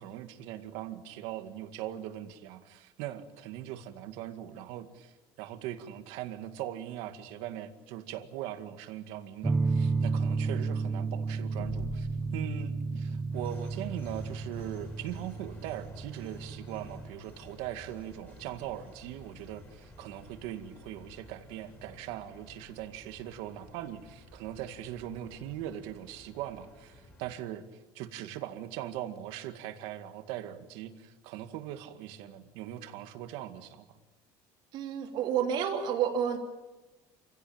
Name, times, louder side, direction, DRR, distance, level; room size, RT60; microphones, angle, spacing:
voice 1, 0.0-27.7 27.9-34.0, right 12 dB, 70° right, 8 dB, 2.1 m, -40 dB
sound 1, 9.4-17.1, right 4 dB, 10° right, 0.8 m, -32 dB
sound 2, 11.6-16.4, left 4 dB, 40° left, 3.3 m, -49 dB
sound 3, 13.3-27.3, left 1 dB, 20° left, 5.0 m, -51 dB
voice 2, 34.7-36.4, right 8 dB, 50° right, 1 dB, 3.2 m, -29 dB
28.0 x 16.5 x 8.9 m, 1.1 s
cardioid pair, 175°, 10 cm